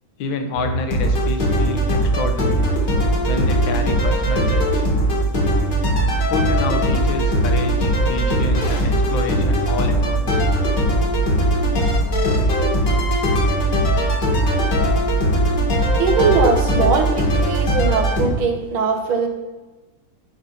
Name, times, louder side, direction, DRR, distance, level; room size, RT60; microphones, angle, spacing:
voice 1, 0.2-2.7 3.3-4.9 6.2-10.4, left 4 dB, 75° left, 6 dB, 1.7 m, -28 dB
sound 1, 0.5-18.3, right 1 dB, 60° left, 2.4 m, -19 dB
voice 2, 16.0-19.3, right 5 dB, 90° right, 4 dB, 2.0 m, -20 dB
11.5 x 4.1 x 5.7 m, 1.1 s
omnidirectional pair, 2.2 m